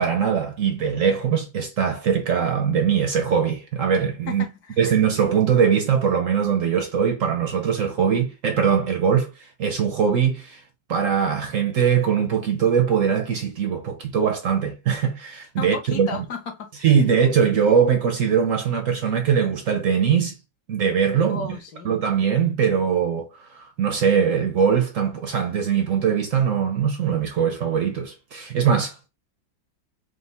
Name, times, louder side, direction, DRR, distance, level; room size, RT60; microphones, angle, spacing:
voice 1, 0.0-4.5 4.8-10.6 10.9-16.1 16.8-20.4 20.7-21.6 21.8-29.1, right 7 dB, 65° right, 0.8 m, -21 dB
voice 2, 4.3-4.8 15.6-16.8 21.3-21.9, left 4 dB, 60° left, 1.3 m, -34 dB
5.0 x 2.1 x 3.3 m
omnidirectional pair, 2.0 m